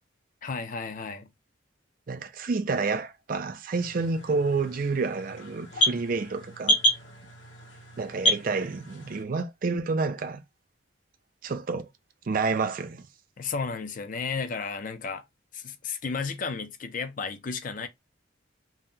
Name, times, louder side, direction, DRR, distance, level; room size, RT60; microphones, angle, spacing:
voice 1, 0.4-1.3 13.4-15.2 15.5-17.9, left 5 dB, 40° left, 0.4 m, -33 dB
voice 2, 2.1-6.8 8.0-10.4 11.4-11.9 12.3-13.1, right 4 dB, 45° right, 0.4 m, -29 dB
sound 1, 3.7-9.2, right 1 dB, 70° left, 1.2 m, -29 dB
2.7 x 2.2 x 3.6 m
head